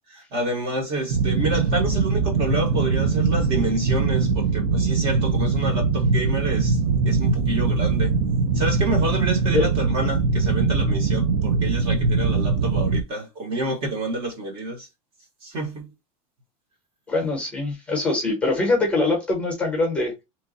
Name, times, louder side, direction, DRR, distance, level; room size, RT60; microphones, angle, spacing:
voice 1, 0.1-6.8 7.1-8.2 8.5-14.9 15.4-15.9, right 1 dB, 30° right, 0.9 m, -28 dB
sound 1, 1.1-13.0, right 4 dB, 75° right, 0.5 m, -22 dB
voice 2, 17.1-20.1, left 3 dB, 5° left, 0.9 m, -23 dB
2.9 x 2.2 x 3.8 m
supercardioid pair, 180°, 18 cm